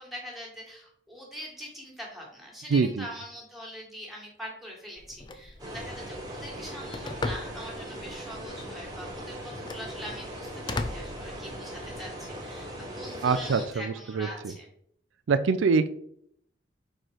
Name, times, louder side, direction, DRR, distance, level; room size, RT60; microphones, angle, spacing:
voice 1, 0.0-12.7 12.9-14.7, equal, ahead, -2 dB, 1.7 m, -43 dB
voice 2, 2.7-3.1 13.2-14.5 15.3-15.9, right 5 dB, 85° right, 12 dB, 0.4 m, -25 dB
Telephone, 5.0-11.9, left 2 dB, 25° left, 0.4 m, -40 dB
sound 1, 5.6-13.7, right 1 dB, 20° right, 1.3 m, -40 dB
4.4 x 4.4 x 4.9 m, 0.69 s
head